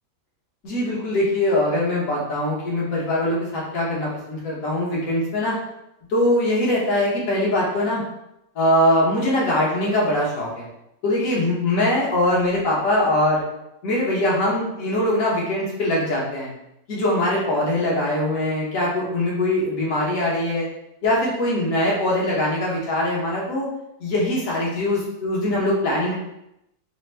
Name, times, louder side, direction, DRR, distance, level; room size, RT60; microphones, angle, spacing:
voice 1, 0.6-5.6 6.1-8.0 8.5-10.7 11.0-13.5 13.8-16.5 16.9-20.7 21.0-23.7 24.0-26.1, left 1 dB, 55° left, -5 dB, 1.3 m, -22 dB
3.4 x 2.1 x 3.2 m, 0.85 s
omnidirectional pair, 1.9 m